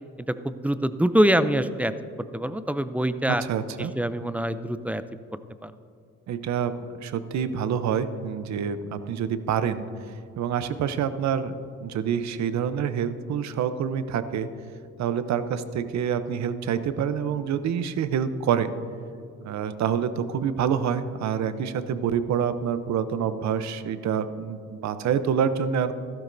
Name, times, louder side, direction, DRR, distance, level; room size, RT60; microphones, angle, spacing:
voice 1, 0.4-1.9 2.3-3.4 4.0-5.0 5.6-5.7, right 1 dB, 5° right, 12 dB, 0.3 m, -24 dB
voice 2, 3.3-3.9 6.3-9.8 10.4-14.5 15.0-18.7 19.4-25.9, right 8 dB, 65° right, 12 dB, 0.7 m, -27 dB
13.5 x 12.0 x 2.6 m, 2.5 s
cardioid pair, 90°, 30 cm